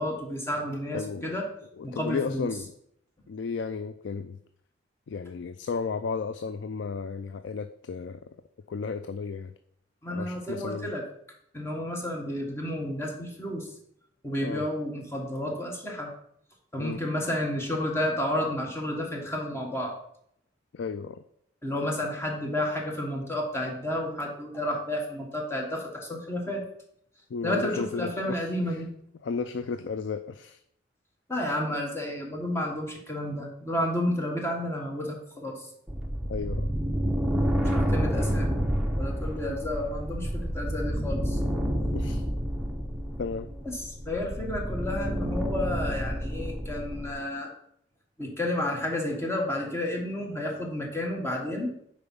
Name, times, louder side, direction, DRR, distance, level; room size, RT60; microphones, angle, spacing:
voice 1, 0.0-1.4 1.8-2.5 10.0-11.0 11.5-13.7 14.2-16.1 16.7-19.9 21.6-26.6 27.4-28.9 31.3-35.7 37.7-38.5 39.0-41.4 43.6-47.5 48.2-51.7, left 1 dB, 15° left, 0 dB, 1.4 m, -31 dB
voice 2, 0.9-1.4 1.8-2.7 3.3-4.4 5.1-8.2 8.7-9.5 10.1-10.9 14.4-14.6 16.8-17.0 20.7-21.2 27.3-28.5 29.2-30.6 36.3-36.7 39.5-39.6 41.9-42.2 43.2-43.5, left 5 dB, 80° left, 10 dB, 0.4 m, -33 dB
sound 1, 35.9-47.1, equal, 5° right, 0.8 m, -29 dB
6.8 x 4.9 x 5.5 m, 0.70 s
head